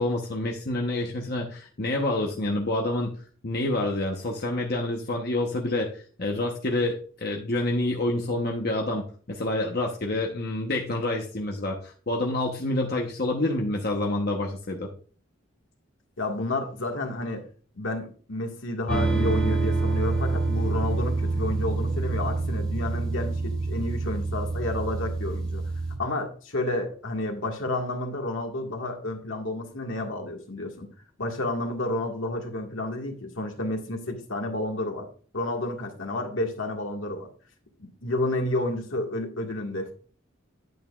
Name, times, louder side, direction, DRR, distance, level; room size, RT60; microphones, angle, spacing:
voice 1, 0.0-3.1 3.4-14.9, left 2 dB, 50° left, 1 dB, 1.0 m, -28 dB
voice 2, 16.2-17.4 17.8-25.6 26.0-30.9 31.2-35.1 35.3-37.3 37.8-39.9, left 2 dB, 80° left, 2 dB, 1.8 m, -30 dB
sound 1, 18.9-25.9, right 3 dB, 5° left, 4.8 m, -26 dB
9.1 x 8.9 x 2.4 m, 0.41 s
head